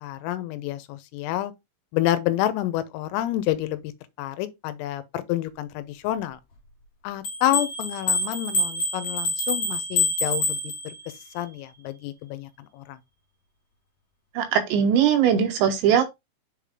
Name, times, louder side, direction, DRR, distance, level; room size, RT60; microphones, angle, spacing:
voice 1, 0.0-1.5 1.9-3.9 4.2-6.4 7.0-11.0 11.4-13.0, left 13 dB, 85° left, 3.4 m, -28 dB
sound 1, 7.2-11.2, left 2 dB, 60° left, 2.2 m, -26 dB
voice 2, 14.4-16.0, right 8 dB, 80° right, 2.8 m, -20 dB
7.1 x 5.1 x 3.5 m
omnidirectional pair, 6.0 m